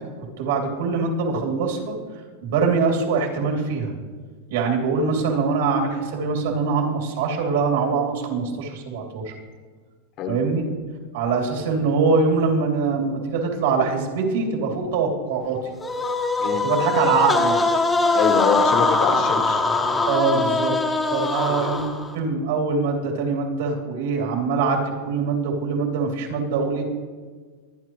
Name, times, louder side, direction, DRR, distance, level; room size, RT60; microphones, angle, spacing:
voice 1, 0.4-2.0 2.4-3.9 4.5-9.3 10.3-10.7 11.1-15.6 16.6-17.6 20.1-21.9 22.1-26.8, right 4 dB, 70° right, 1 dB, 3.1 m, -23 dB
sound 1, 15.8-22.1, left 3 dB, 10° left, 0.9 m, -22 dB
voice 2, 18.1-19.6, left 6 dB, 35° left, 7 dB, 1.1 m, -24 dB
23.0 x 9.8 x 3.2 m, 1.5 s
supercardioid pair, 165°, 0 cm